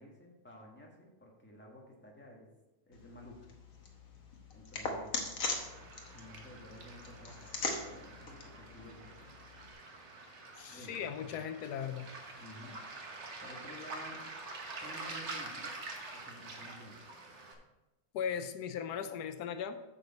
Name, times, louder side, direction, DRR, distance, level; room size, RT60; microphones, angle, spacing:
voice 1, 0.0-2.5 2.8-3.5 4.5-5.2 6.1-9.3 10.7-11.0 12.4-12.8 13.4-14.2 14.8-15.7 16.1-17.1, left 1 dB, 5° left, -1 dB, 1.5 m, -52 dB
sound 1, 2.9-9.7, left 3 dB, 60° left, 1.6 m, -41 dB
Waves surf, 5.5-17.5, right 3 dB, 50° right, 1.4 m, -47 dB
voice 2, 10.6-12.1 18.1-19.8, left 8 dB, 85° left, 10 dB, 1.2 m, -38 dB
8.8 x 6.7 x 4.1 m, 1.0 s
omnidirectional pair, 1.7 m